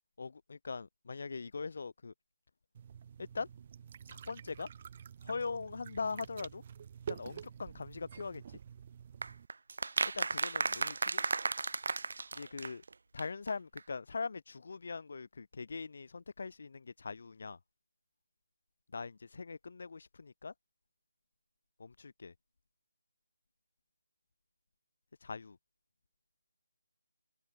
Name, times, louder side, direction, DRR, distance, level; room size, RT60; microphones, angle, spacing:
voice 1, 0.2-2.1 3.2-3.5 4.1-4.7 5.2-6.6 7.1-8.6 10.1-11.2 12.3-12.8 13.1-17.6 18.9-20.5 21.8-22.3 25.2-25.6, left 4 dB, 45° left, 1.9 m, -41 dB
sound 1, 2.7-9.5, right 8 dB, 25° right, 1.8 m, -48 dB
sound 2, 9.2-12.9 13.2-13.3 13.5-13.6 13.8-13.9, right 4 dB, 55° right, 0.4 m, -34 dB
figure-of-eight pair, 175°, 0 cm